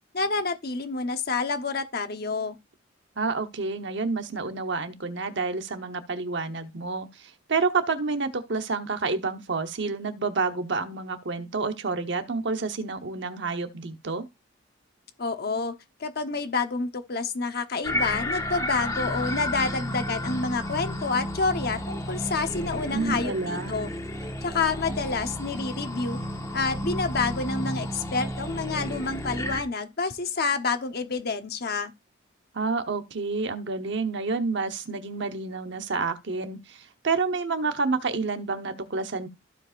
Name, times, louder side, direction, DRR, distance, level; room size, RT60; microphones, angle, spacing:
voice 1, 0.1-2.6 15.2-15.7 16.0-23.9 24.4-26.2 26.5-31.9, left 4 dB, 50° left, 1.0 m, -28 dB
voice 2, 3.2-14.3 22.9-23.7 32.5-39.3, right 4 dB, 60° right, 1.0 m, -29 dB
sound 1, 17.8-29.6, left 1 dB, 15° left, 1.4 m, -32 dB
15.0 x 5.0 x 2.5 m
head